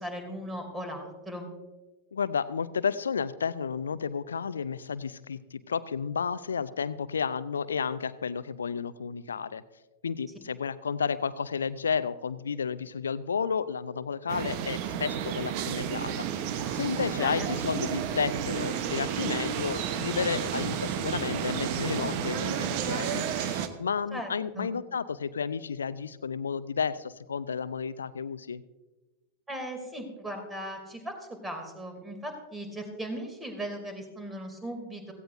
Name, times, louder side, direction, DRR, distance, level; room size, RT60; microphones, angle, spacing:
voice 1, 0.0-1.5 17.2-17.5 24.1-24.8 29.5-31.1 31.4-35.1, equal, 10° right, 5 dB, 2.8 m, -38 dB
voice 2, 2.1-9.6 10.0-16.2 16.7-28.6, left 6 dB, 70° left, 17 dB, 0.5 m, -32 dB
sound 1, 14.3-23.7, right 8 dB, 45° right, 1.0 m, -31 dB
16.5 x 15.5 x 2.6 m, 1.1 s
figure-of-eight pair, 90°, 0 cm